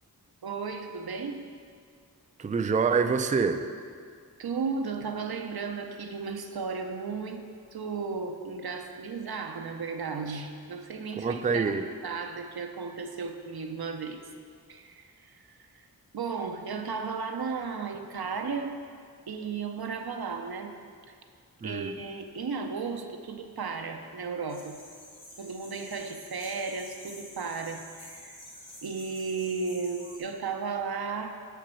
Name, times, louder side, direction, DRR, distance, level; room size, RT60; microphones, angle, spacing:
voice 1, 0.4-1.4 4.4-7.4 7.7-14.2 14.7-15.9 16.1-18.8 19.3-20.8 21.6-24.8 25.4-28.4 28.8-31.3, right 5 dB, 70° right, 5 dB, 0.6 m, -34 dB
voice 2, 2.4-3.6 11.2-11.9 21.6-21.9, right 5 dB, 20° right, 8 dB, 0.3 m, -26 dB
sound 1, 24.5-30.2, left 1 dB, 75° left, 1.3 m, -48 dB
6.0 x 4.6 x 6.1 m, 2.1 s
wide cardioid pair, 40°, 38 cm